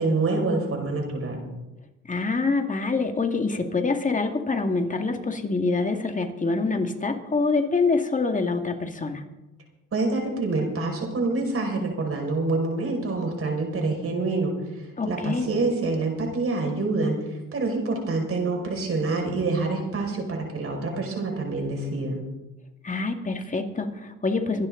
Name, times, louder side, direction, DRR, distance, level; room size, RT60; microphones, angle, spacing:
voice 1, 0.0-1.4 9.9-22.2, right 3 dB, 50° right, 1 dB, 5.6 m, -26 dB
voice 2, 2.1-9.2 15.0-15.5 22.8-24.7, left 3 dB, 25° left, 5 dB, 2.0 m, -25 dB
24.5 x 11.0 x 3.9 m, 0.97 s
cardioid pair, 90°, 30 cm